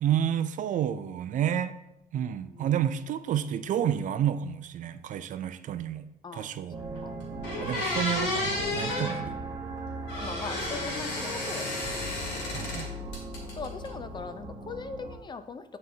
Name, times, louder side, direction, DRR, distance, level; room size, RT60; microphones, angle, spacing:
voice 1, 0.0-1.7 2.1-6.1 6.3-6.8 7.6-9.3 12.5-12.9, right 10 dB, 50° right, 12 dB, 0.4 m, -30 dB
voice 2, 6.2-6.6 7.0-7.2 10.2-11.9 12.3-12.7 13.6-15.8, left 4 dB, 25° left, 10 dB, 0.4 m, -40 dB
sound 1, 6.7-15.2, right 2 dB, 20° right, 1.0 m, -38 dB
Squeaky Door Hinge, 6.9-7.0 7.4-9.2 10.1-12.9 13.1-13.9, left 2 dB, 80° left, 2.0 m, -32 dB
9.4 x 4.2 x 2.7 m, 0.87 s
cardioid pair, 110°, 17 cm